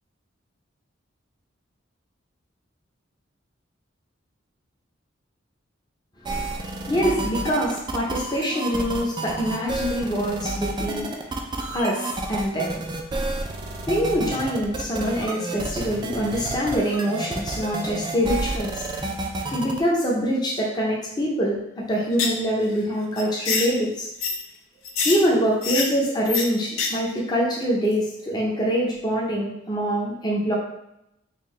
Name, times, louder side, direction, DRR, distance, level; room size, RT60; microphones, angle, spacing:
sound 1, 6.2-19.8, right 2 dB, 25° right, 0.3 m, -30 dB
voice 1, 6.7-11.1 11.7-12.8 13.9-18.9 19.5-21.6 21.9-24.1 25.0-30.5, equal, 20° left, -4 dB, 0.6 m, -24 dB
sound 2, 22.1-22.4 22.7-22.8 23.2-23.7 24.2-24.4 24.9-25.2 25.6-25.9 26.3-26.4 26.7-26.9 27.2-27.3, left 5 dB, 90° left, 0.6 m, -24 dB
3.8 x 2.6 x 3.1 m, 0.82 s
head